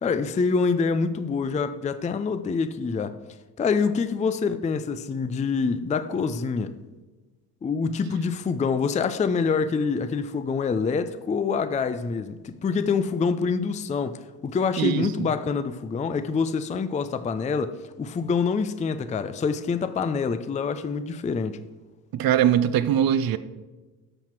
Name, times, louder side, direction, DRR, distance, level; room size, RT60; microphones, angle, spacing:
voice 1, 0.0-3.2 3.6-6.8 7.6-21.6, left 5 dB, 15° left, 0.5 m, -26 dB
voice 2, 14.8-15.3 22.1-23.4, right 10 dB, 45° right, 0.7 m, -22 dB
13.0 x 5.8 x 4.6 m
hypercardioid pair, 55°, 49 cm